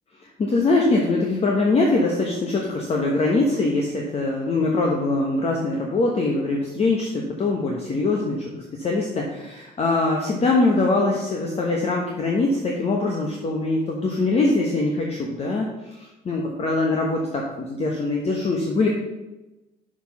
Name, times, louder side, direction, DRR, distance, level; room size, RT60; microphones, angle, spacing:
voice 1, 0.4-8.5 8.8-18.9, left 2 dB, 35° left, -1 dB, 1.2 m, -23 dB
6.3 x 4.9 x 5.9 m, 1.0 s
cardioid pair, 110°, 17 cm